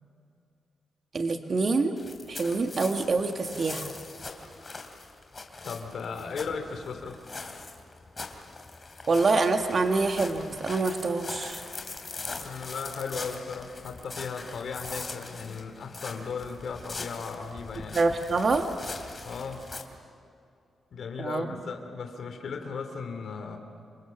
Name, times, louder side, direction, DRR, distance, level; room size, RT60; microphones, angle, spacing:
voice 1, 1.1-2.0 2.3-4.0 9.1-11.6 17.9-18.7 21.2-21.6, right 3 dB, 45° right, 5 dB, 1.8 m, -26 dB
sound 1, 2.0-19.8, left 3 dB, 30° left, 3.0 m, -41 dB
voice 2, 5.6-7.2 12.4-18.0 19.2-19.7 20.9-23.6, left 5 dB, 70° left, 5 dB, 2.8 m, -36 dB
29.0 x 26.5 x 7.4 m, 2.5 s
cardioid pair, 110°, 0 cm